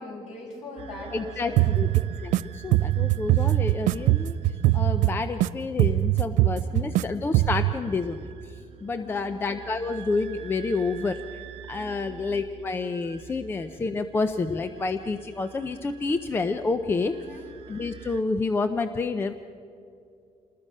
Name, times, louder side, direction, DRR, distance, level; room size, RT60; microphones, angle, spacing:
voice 1, 0.0-1.9 6.5-6.9 8.9-9.3 11.7-12.1 17.1-17.5, left 2 dB, 55° left, -2 dB, 7.8 m, -41 dB
sound 1, 0.8-18.2, right 9 dB, 50° right, 0.9 m, -46 dB
voice 2, 1.1-1.9 2.2-4.4 4.7-8.5 8.8-11.2 11.7-17.1 17.7-19.3, left 3 dB, 15° left, 9 dB, 0.5 m, -29 dB
sound 2, 1.6-2.4 2.7-5.5 5.8-7.0 7.3-7.7, right 16 dB, 75° right, 0.5 m, -22 dB
28.0 x 20.0 x 5.5 m, 2.5 s
cardioid pair, 170°, 13 cm